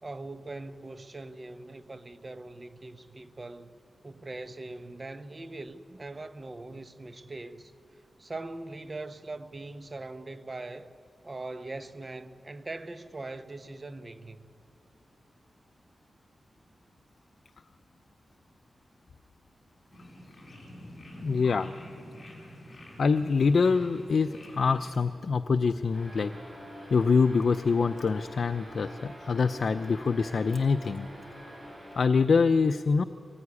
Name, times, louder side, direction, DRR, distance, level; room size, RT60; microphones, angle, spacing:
voice 1, 0.0-3.8 4.0-7.7 8.2-10.9 11.2-14.4, right 2 dB, 30° right, 1.0 m, -41 dB
sound 1, 19.9-24.9, left 1 dB, 25° left, 5.2 m, -46 dB
voice 2, 21.2-21.7 23.0-26.3 26.9-31.1 32.0-33.0, left 5 dB, 60° left, 0.5 m, -25 dB
sound 2, 25.9-32.1, equal, 5° right, 7.5 m, -46 dB
24.5 x 19.0 x 9.7 m
wide cardioid pair, 140°, 0 cm